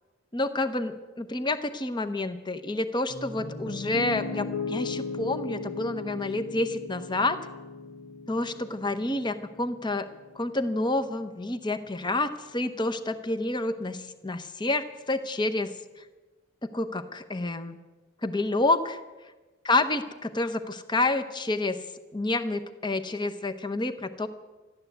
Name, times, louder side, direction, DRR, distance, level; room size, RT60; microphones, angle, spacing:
voice 1, 0.3-7.4 8.3-10.1 10.3-15.7 16.6-17.8 18.2-19.0 19.6-21.8 22.1-24.3, left 2 dB, 25° left, 10 dB, 0.9 m, -29 dB
Piano, 3.1-11.2, left 4 dB, 85° left, 1.2 m, -38 dB
14.5 x 11.0 x 8.0 m, 1.2 s
head